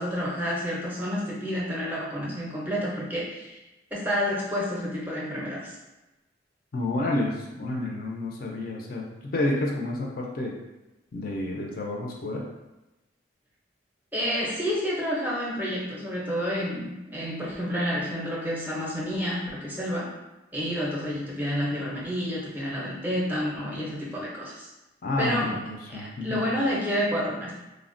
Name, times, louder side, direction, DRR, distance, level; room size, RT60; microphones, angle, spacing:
voice 1, 0.0-3.6 3.9-5.8 14.1-20.1 20.5-24.7 25.2-25.6 25.9-27.5, equal, 10° right, -5 dB, 0.5 m, -29 dB
voice 2, 6.7-10.5 11.1-12.5 25.0-26.4, left 2 dB, 50° left, -1 dB, 0.4 m, -30 dB
3.3 x 2.1 x 2.5 m, 1.0 s
head